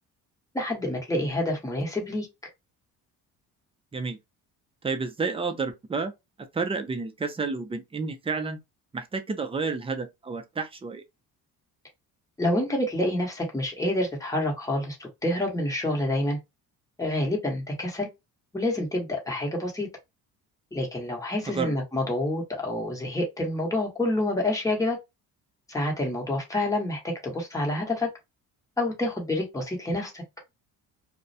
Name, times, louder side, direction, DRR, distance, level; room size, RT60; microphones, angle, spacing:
voice 1, 0.5-2.3 12.4-16.4 17.0-18.1 18.5-19.9 20.7-25.0 25.7-28.1 28.8-30.2, left 1 dB, 10° left, 1.0 m, -28 dB
voice 2, 4.8-6.1 6.5-8.6 8.9-11.0 21.5-21.8, right 4 dB, 15° right, 0.4 m, -30 dB
2.3 x 2.1 x 2.6 m
cardioid pair, 100°, 37 cm